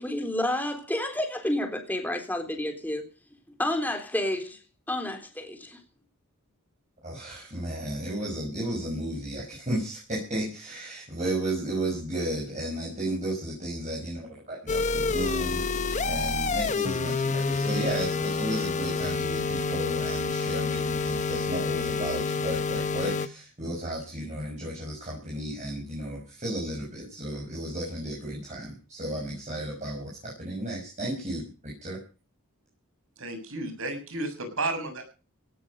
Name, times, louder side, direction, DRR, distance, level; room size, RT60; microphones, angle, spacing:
voice 1, 0.0-3.0 3.6-4.6 4.9-5.8, left 1 dB, 10° left, 5 dB, 3.5 m, -30 dB
voice 2, 7.0-15.6 16.1-32.0, right 1 dB, 35° right, -2 dB, 6.0 m, -33 dB
sound 1, 14.7-23.3, left 4 dB, 35° left, 1.1 m, -28 dB
voice 3, 33.2-35.1, right 2 dB, 70° right, 7 dB, 6.8 m, -32 dB
17.5 x 13.0 x 5.4 m, 0.35 s
head